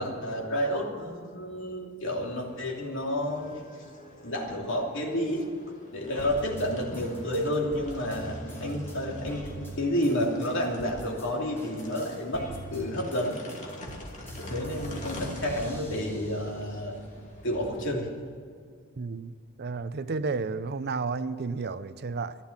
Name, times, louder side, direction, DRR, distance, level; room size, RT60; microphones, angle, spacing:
voice 1, 0.0-3.6 4.2-5.5 5.9-13.4 14.4-17.0 17.4-18.1, equal, 60° left, 3.0 m, -30 dB
sound 1, 2.2-17.9, left 1 dB, 35° left, 2.5 m, -47 dB
sound 2, 6.2-11.3 11.6-16.8 17.2-18.2, right 1 dB, 10° left, 5.0 m, -43 dB
voice 2, 19.0-22.4, right 4 dB, 50° right, 0.5 m, -32 dB
15.5 x 11.5 x 7.3 m
head